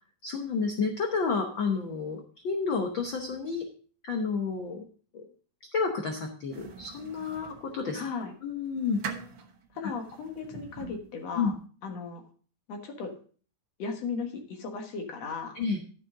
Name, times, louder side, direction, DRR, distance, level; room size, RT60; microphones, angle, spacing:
voice 1, 0.2-3.6 4.1-4.9 5.1-5.3 5.7-8.0 8.4-9.0 11.4-11.5 15.5-15.8, left 5 dB, 75° left, 3 dB, 1.1 m, -30 dB
sound 1, 6.5-8.0 8.5-11.2, right 6 dB, 60° right, 1.3 m, -43 dB
voice 2, 7.9-8.3 9.7-11.5 11.8-12.2 12.7-13.1 13.8-15.6, left 5 dB, 60° left, 3 dB, 2.4 m, -36 dB
11.5 x 7.5 x 3.7 m, 0.42 s
omnidirectional pair, 3.7 m